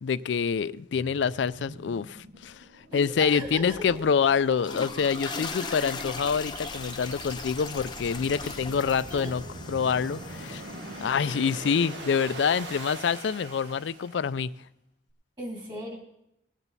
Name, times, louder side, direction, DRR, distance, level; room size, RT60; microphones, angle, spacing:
voice 1, 0.0-2.6 2.9-9.4 9.7-10.6 11.0-14.5, left 6 dB, 80° left, 0.4 m, -26 dB
sound 1, 0.9-14.3, right 2 dB, 80° right, 1.6 m, -43 dB
voice 2, 2.9-3.8 5.0-5.8 8.4-8.6 9.1-9.3 15.4-16.0, equal, 25° right, 3.1 m, -39 dB
sound 2, 3.1-8.2, equal, 50° right, 4.9 m, -54 dB
sound 3, 4.5-12.8, left 4 dB, 25° left, 0.7 m, -40 dB
19.0 x 8.9 x 4.1 m
head